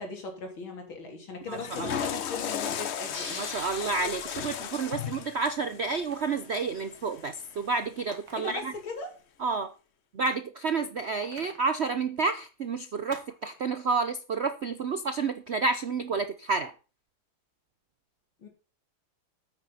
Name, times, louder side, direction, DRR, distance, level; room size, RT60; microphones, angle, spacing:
voice 1, 0.0-3.4 8.4-9.1 18.4-18.5, left 3 dB, 85° left, 3 dB, 4.0 m, -39 dB
Water / Toilet flush, 1.5-7.7, left 9 dB, 65° left, 0.6 m, -36 dB
voice 2, 1.5-2.0 3.4-8.7 9.4-9.7 10.1-16.7, right 4 dB, 65° right, 11 dB, 0.6 m, -30 dB
sound 1, 3.1-6.3, left 1 dB, 25° left, 4.2 m, -46 dB
sound 2, 3.3-3.6 4.2-4.5 6.1-6.4 7.9-8.6 8.9-9.0 10.2-10.6 11.2-11.7 13.1-13.7, right 4 dB, 85° right, 2.8 m, -49 dB
9.4 x 9.0 x 5.6 m, 0.35 s
omnidirectional pair, 2.1 m